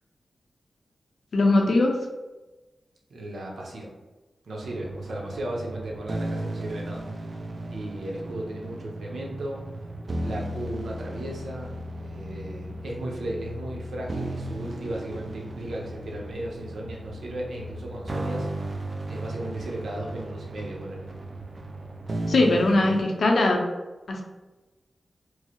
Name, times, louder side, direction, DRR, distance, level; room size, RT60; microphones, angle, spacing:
voice 1, 1.3-2.0 22.3-23.6 24.1-24.2, left 2 dB, 80° left, 1 dB, 0.6 m, -20 dB
voice 2, 3.1-3.9 4.4-9.8 10.2-18.7 19.1-21.1, right 1 dB, 85° right, -1 dB, 0.8 m, -36 dB
sound 1, 4.6-23.0, right 1 dB, 55° right, 0.4 m, -35 dB
4.6 x 2.0 x 2.9 m, 1.1 s
cardioid pair, 70°, 0 cm